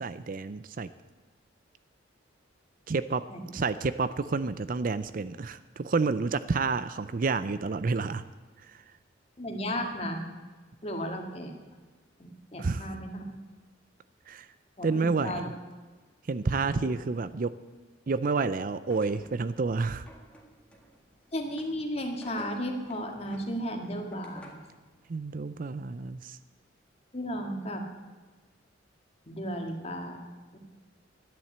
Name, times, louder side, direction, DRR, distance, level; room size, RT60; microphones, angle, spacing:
voice 1, 0.0-0.9 2.9-3.2 3.5-8.2 12.6-12.9 14.3-14.5 14.8-15.4 16.3-17.6 18.1-20.0 25.1-26.4, right 4 dB, 45° right, 14 dB, 0.5 m, -29 dB
voice 2, 9.4-10.2 10.8-11.5 12.2-13.2 14.8-15.5 16.6-16.9 21.3-24.6 27.1-27.9 29.3-30.2 30.5-30.6, equal, 30° left, 3 dB, 1.9 m, -34 dB
sound 1, 18.9-24.8, right 1 dB, 5° left, 1.9 m, -52 dB
12.5 x 10.5 x 8.0 m, 1.3 s
head